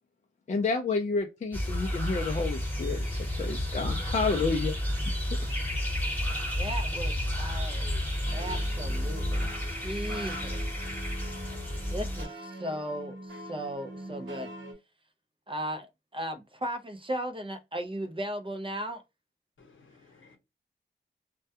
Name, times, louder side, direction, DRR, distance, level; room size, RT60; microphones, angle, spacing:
voice 1, 0.5-4.8, left 4 dB, 35° left, 0.4 m, -30 dB
sound 1, 1.5-12.2, left 1 dB, 10° left, 1.0 m, -31 dB
voice 2, 6.5-8.0 8.3-10.6 11.9-14.5 15.5-15.9 16.1-19.0, equal, 25° right, 0.5 m, -36 dB
sound 2, 8.2-14.7, right 1 dB, 85° right, 1.0 m, -43 dB
voice 3, 19.6-20.4, left 4 dB, 75° left, 0.9 m, -58 dB
2.2 x 2.2 x 2.7 m
wide cardioid pair, 90°, 20 cm